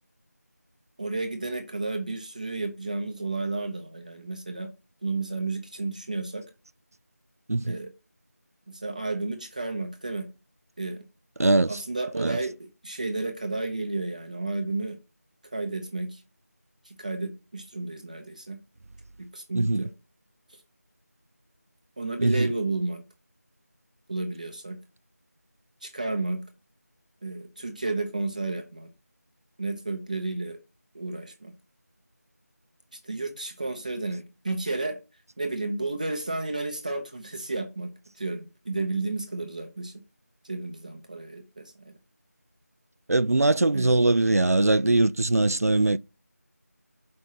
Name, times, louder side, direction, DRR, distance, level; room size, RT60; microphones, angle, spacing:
voice 1, 1.0-4.7 5.0-6.4 7.6-7.9 8.7-10.3 10.8-11.0 11.7-15.0 15.4-16.2 16.8-18.6 19.2-19.9 22.0-23.0 24.1-24.8 25.8-26.4 27.2-28.9 29.6-30.6 30.9-31.5 32.9-35.0 35.4-39.9 40.4-41.9 43.7-43.9, right 3 dB, 25° right, 0.8 m, -32 dB
voice 2, 11.4-11.8 12.2-12.4 19.5-19.8 22.2-22.5 43.1-46.0, right 2 dB, 65° right, 0.4 m, -21 dB
6.1 x 5.3 x 5.6 m
figure-of-eight pair, 170°, 9 cm